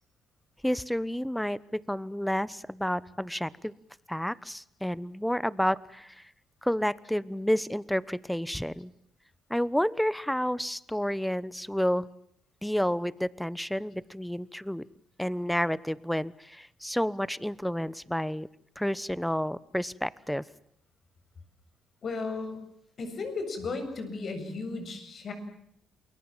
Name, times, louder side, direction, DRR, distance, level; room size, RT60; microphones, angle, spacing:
voice 1, 0.6-3.7 4.1-6.2 6.6-8.9 9.5-12.1 12.6-14.8 15.2-18.5 18.8-20.4, equal, 5° left, 20 dB, 1.0 m, -30 dB
voice 2, 22.0-22.6 23.0-25.3, left 3 dB, 50° left, 7 dB, 7.4 m, -35 dB
28.5 x 22.0 x 7.4 m, 0.72 s
cardioid pair, 90°, 0 cm